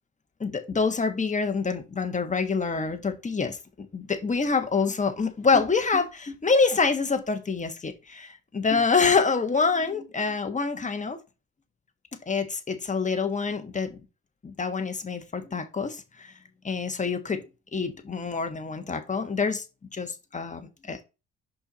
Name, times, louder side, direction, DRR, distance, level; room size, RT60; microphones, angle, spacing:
voice 1, 0.4-11.2 12.3-14.0 14.4-16.3 16.6-17.4 17.7-19.6 19.9-21.0, left 4 dB, 25° left, 1.4 m, -26 dB
5.4 x 4.4 x 5.0 m
cardioid pair, 90°, 30 cm